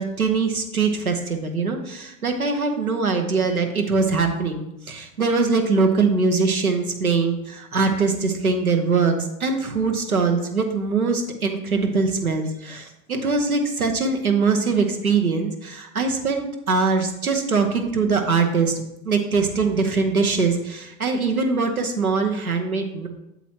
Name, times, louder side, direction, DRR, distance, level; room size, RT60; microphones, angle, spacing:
voice 1, 0.0-18.7 19.0-23.1, right 4 dB, 90° right, 4 dB, 1.1 m, -22 dB
8.2 x 7.3 x 2.9 m, 0.85 s
figure-of-eight pair, 85°, 42 cm